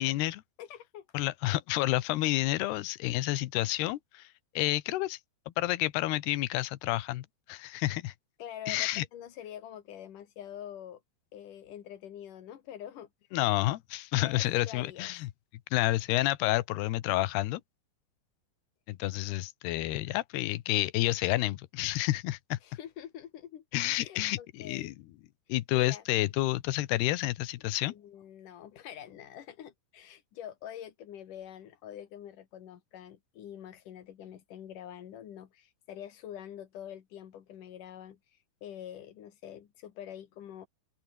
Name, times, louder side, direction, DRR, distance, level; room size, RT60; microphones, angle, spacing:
voice 1, 0.0-0.4 1.1-4.3 4.6-5.2 5.6-8.1 8.7-9.0 13.3-15.3 15.7-17.6 18.9-22.6 23.7-24.9 25.5-27.9, left 17 dB, 80° left, 3.1 m, -29 dB
voice 2, 0.6-1.1 8.4-11.0 11.3-13.1 14.2-15.1 22.6-25.0 25.7-26.0 27.8-38.2 38.6-40.7, left 10 dB, 60° left, 3.2 m, -45 dB
open air
omnidirectional pair, 4.6 m